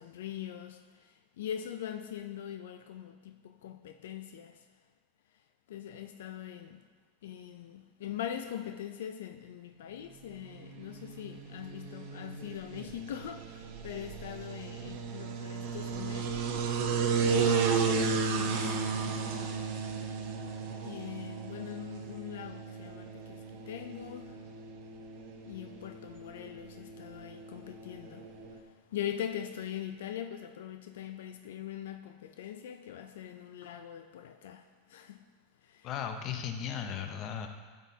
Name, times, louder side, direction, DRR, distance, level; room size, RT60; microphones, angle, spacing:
voice 1, 0.0-4.7 5.7-6.8 7.2-16.4 17.1-19.5 20.8-24.5 25.5-35.2 35.6-35.9, left 10 dB, 85° left, 0.4 m, -42 dB
sound 1, 10.5-28.6, right 5 dB, 60° right, 0.9 m, -34 dB
voice 2, 35.8-37.5, left 8 dB, 40° left, 0.7 m, -36 dB
12.0 x 6.2 x 2.8 m
supercardioid pair, 145°, 0 cm